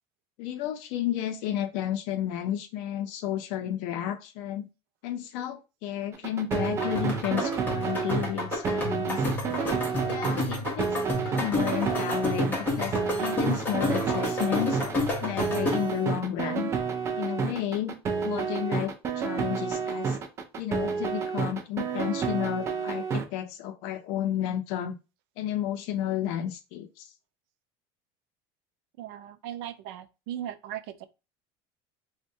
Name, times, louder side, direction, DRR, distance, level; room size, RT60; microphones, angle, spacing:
voice 1, 0.4-4.7 5.0-9.3 10.0-12.9 13.2-14.8 15.2-16.7 17.2-17.9 18.2-20.2 20.6-24.9 25.4-27.1, left 11 dB, 65° left, 0.5 m, -32 dB
sound 1, 6.1-23.2, right 6 dB, 20° right, 0.4 m, -30 dB
sound 2, 6.5-16.0, left 2 dB, 15° left, 0.7 m, -31 dB
voice 2, 29.0-31.1, right 11 dB, 90° right, 0.4 m, -38 dB
3.5 x 2.1 x 2.6 m
cardioid pair, 175°, 13 cm